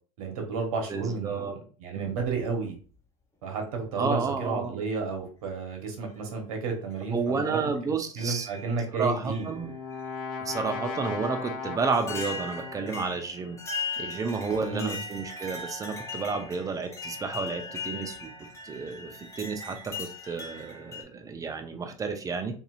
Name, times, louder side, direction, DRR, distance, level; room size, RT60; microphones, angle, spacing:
voice 1, 0.2-2.8 3.4-7.7 8.2-9.5 14.7-15.0, right 4 dB, 70° right, 2 dB, 1.0 m, -32 dB
voice 2, 0.9-1.6 1.9-2.2 4.0-4.8 7.1-8.5 8.9-9.7 10.4-18.3 18.6-22.5, right 4 dB, 20° right, 6 dB, 0.6 m, -31 dB
sound 1, 2.1-2.9 4.1-4.2 5.2-5.5 6.1-6.2 6.9-7.0 8.2-8.9 9.3-10.1 11.2-11.3 11.9-21.0, left 4 dB, 15° left, 0.9 m, -39 dB
Brass instrument, 9.0-13.2, left 5 dB, 55° left, 1.0 m, -37 dB
2.7 x 2.6 x 2.4 m, 0.39 s
hypercardioid pair, 90°, 18 cm